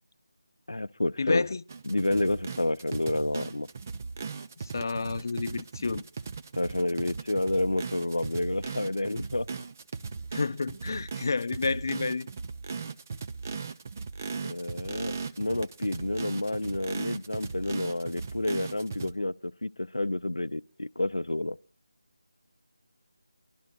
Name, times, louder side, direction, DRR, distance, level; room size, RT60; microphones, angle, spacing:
voice 1, 0.7-1.5 1.8-3.7 6.5-9.5 14.4-21.6, left 2 dB, 85° left, 0.6 m, -30 dB
voice 2, 1.2-1.6 4.6-6.0 10.3-12.3, left 4 dB, 45° left, 0.6 m, -30 dB
sound 1, 1.7-19.1, right 4 dB, 30° right, 0.6 m, -38 dB
23.5 x 12.5 x 2.4 m
figure-of-eight pair, 165°, 3 cm